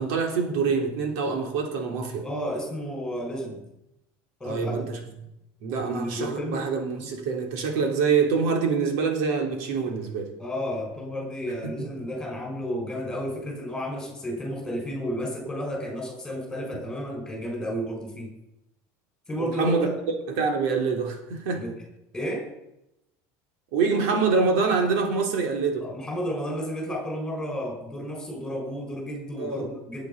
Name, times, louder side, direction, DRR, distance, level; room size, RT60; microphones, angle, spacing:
voice 1, 0.0-2.2 4.4-5.0 5.6-10.3 11.6-11.9 19.4-19.9 20.3-21.6 23.7-25.8 29.4-29.7, right 5 dB, 70° right, 3 dB, 3.4 m, -25 dB
voice 2, 2.2-3.6 4.4-4.9 5.8-6.6 10.4-18.3 19.3-19.9 21.6-21.7 22.1-22.5 25.8-30.1, equal, 5° left, 0 dB, 5.2 m, -32 dB
19.5 x 8.3 x 5.5 m, 0.85 s
cardioid pair, 170°, 7 cm